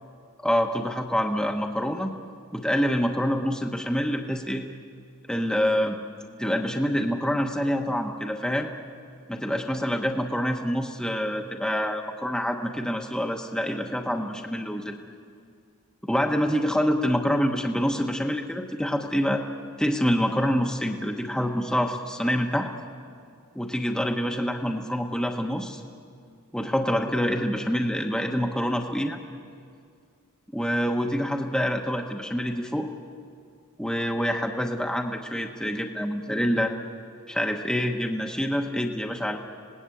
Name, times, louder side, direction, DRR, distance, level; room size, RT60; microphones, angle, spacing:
voice 1, 0.4-2.1 2.5-4.6 5.3-6.0 6.4-8.7 9.3-15.0 16.0-19.4 19.8-22.7 23.5-25.8 26.5-29.2 30.5-32.9 33.8-36.7 37.3-39.4, equal, 5° left, 2 dB, 1.0 m, -26 dB
27.0 x 19.0 x 8.4 m, 2.2 s
head